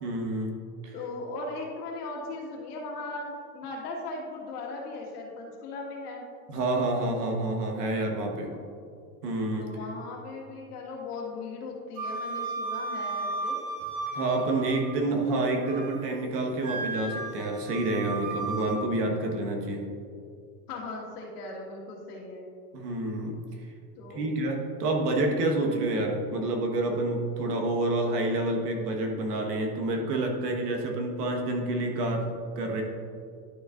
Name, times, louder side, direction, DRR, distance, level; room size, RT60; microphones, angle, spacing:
voice 1, 0.0-0.6 0.8-0.9 6.5-8.5 9.2-9.7 14.1-19.8 22.7-23.4 24.1-32.8, right 2 dB, 65° right, 1 dB, 1.5 m, -28 dB
voice 2, 0.9-6.3 8.4-8.6 9.6-13.6 20.7-22.5 24.0-24.4, left 2 dB, 65° left, -1 dB, 1.8 m, -38 dB
Wind instrument woodwind instrument, 12.0-15.0 15.4-16.1 16.6-18.8, right 3 dB, 85° right, 1.8 m, -35 dB
11.5 x 6.3 x 2.5 m, 2.3 s
supercardioid pair, 175°, 50 cm